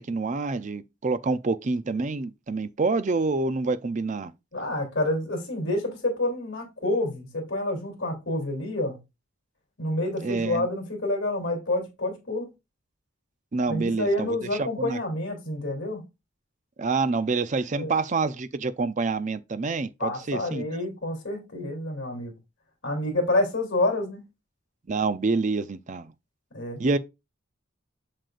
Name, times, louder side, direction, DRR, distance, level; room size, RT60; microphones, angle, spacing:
voice 1, 0.0-4.3 10.2-10.7 13.5-15.0 16.8-20.9 24.9-26.1 26.8-27.0, right 3 dB, 35° right, 0.5 m, -27 dB
voice 2, 4.5-9.0 9.8-12.5 13.7-16.0 17.7-17.9 20.0-22.3 22.8-24.2 26.5-26.8, left 1 dB, 60° left, 3.0 m, -28 dB
7.5 x 6.6 x 2.5 m
head